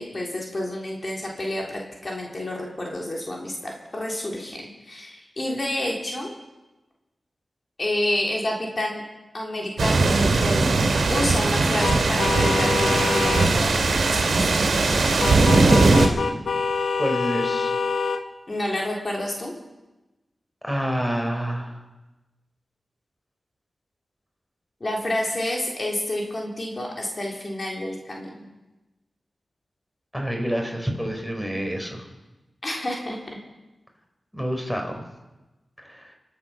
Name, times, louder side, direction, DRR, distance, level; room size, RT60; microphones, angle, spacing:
voice 1, 0.0-6.3 7.8-9.0 9.3-10.7 11.1-14.5 18.5-19.5 24.8-28.4 32.6-33.4, left 1 dB, 45° left, -1 dB, 3.6 m, -29 dB
sound 1, 9.8-16.1, right 3 dB, 85° right, 2.3 m, -19 dB
sound 2, 11.8-13.5 15.2-18.2, left 4 dB, 90° left, 0.7 m, -25 dB
voice 2, 17.0-17.7 20.6-21.8 30.1-32.1 34.3-35.0 35.8-36.1, equal, ahead, 3 dB, 4.1 m, -28 dB
25.5 x 8.6 x 6.2 m, 1.1 s
cardioid pair, 45°, 0 cm